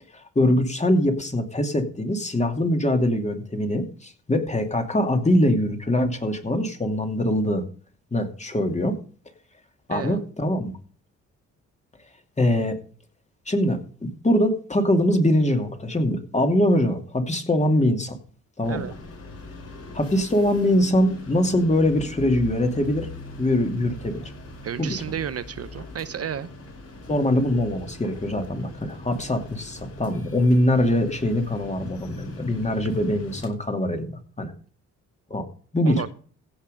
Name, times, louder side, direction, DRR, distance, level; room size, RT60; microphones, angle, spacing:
voice 1, 0.4-7.6 8.1-8.9 9.9-10.7 12.4-12.8 13.5-18.2 18.6-18.9 19.9-23.1 23.4-24.3 24.8-25.0 27.1-34.5 35.3-35.4 35.7-36.0, left 1 dB, 20° left, 5 dB, 2.6 m, -23 dB
voice 2, 9.9-10.3 18.7-18.9 24.6-26.5 35.8-36.1, right 8 dB, 50° right, 14 dB, 0.7 m, -32 dB
sound 1, 18.6-33.5, left 1 dB, 50° left, 5.4 m, -41 dB
16.0 x 5.8 x 5.4 m, 0.43 s
cardioid pair, 80°, 31 cm